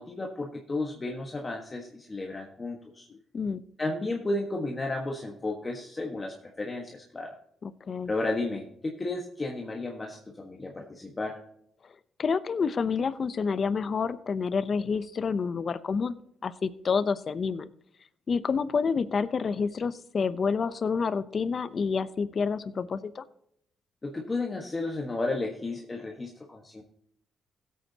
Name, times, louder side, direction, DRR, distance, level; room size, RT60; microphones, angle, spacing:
voice 1, 0.0-3.1 3.8-7.3 8.1-11.4 24.0-26.8, left 2 dB, 25° left, 0 dB, 1.5 m, -33 dB
voice 2, 3.1-3.6 7.6-8.1 12.2-16.2 16.4-17.7 18.3-23.2, left 5 dB, 45° left, 14 dB, 0.7 m, -28 dB
16.0 x 8.4 x 2.9 m, 0.72 s
cardioid pair, 90°, 0 cm